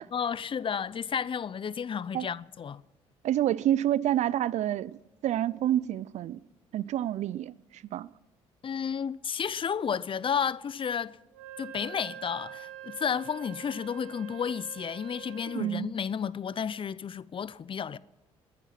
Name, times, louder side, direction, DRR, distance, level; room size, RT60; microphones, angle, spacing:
voice 1, 0.1-2.8 8.6-11.2 11.6-18.0, left 7 dB, 40° left, 0.6 m, -32 dB
voice 2, 3.2-5.0 5.2-6.4 6.7-8.1 15.5-15.9, right 12 dB, 65° right, 0.5 m, -28 dB
Wind instrument woodwind instrument, 11.3-15.8, right 11 dB, 90° right, 1.2 m, -45 dB
20.5 x 11.0 x 5.9 m
supercardioid pair, 60°, 13 cm